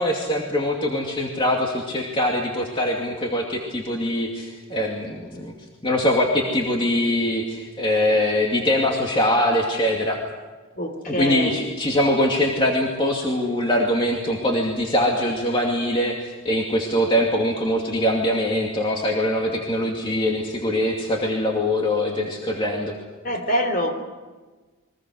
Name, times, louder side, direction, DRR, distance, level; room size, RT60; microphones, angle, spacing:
voice 1, 0.0-5.5 5.8-10.2 11.1-22.9, left 1 dB, 25° left, 0 dB, 2.5 m, -23 dB
voice 2, 10.7-11.6 23.2-23.9, equal, 40° left, 7 dB, 3.4 m, -25 dB
29.5 x 23.0 x 6.5 m, 1.3 s
head